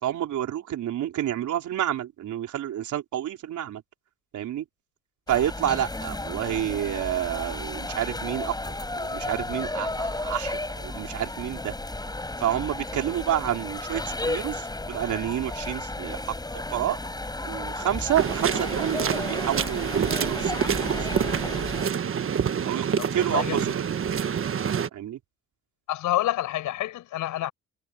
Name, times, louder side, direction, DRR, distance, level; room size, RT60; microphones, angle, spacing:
voice 1, 0.0-3.8 4.3-4.6 5.3-11.7 12.4-17.0 17.4-20.9 22.6-22.9 23.1-24.0 24.9-25.2, right 11 dB, 75° right, 4.2 m, -29 dB
sound 1, 5.3-21.9, left 2 dB, 15° left, 5.8 m, -33 dB
sound 2, 18.1-24.9, right 7 dB, 45° right, 1.3 m, -27 dB
voice 2, 23.0-23.6 25.9-27.5, left 14 dB, 85° left, 7.0 m, -28 dB
cardioid pair, 90°, 30 cm